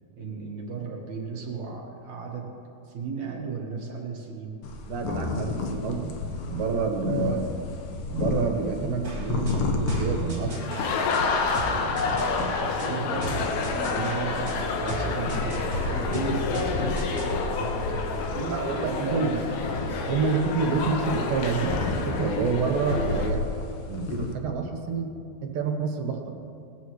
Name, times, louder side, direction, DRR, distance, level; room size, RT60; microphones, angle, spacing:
voice 1, 0.2-2.6 2.8-4.6 7.2-7.5 11.9-19.5, right 5 dB, 60° right, -1 dB, 2.4 m, -35 dB
sound 1, 4.6-24.3, left 3 dB, 70° left, 2.4 m, -33 dB
voice 2, 4.9-6.1 6.5-7.4 8.1-10.7 18.5-19.3 20.1-23.4 23.9-25.1 25.4-26.3, right 5 dB, 75° right, 3 dB, 2.8 m, -28 dB
sound 2, 9.0-17.4, right 2 dB, 25° right, 3.1 m, -37 dB
sound 3, 10.5-23.3, left 4 dB, 85° left, 3.0 m, -29 dB
21.0 x 15.0 x 3.1 m, 2.5 s
omnidirectional pair, 4.2 m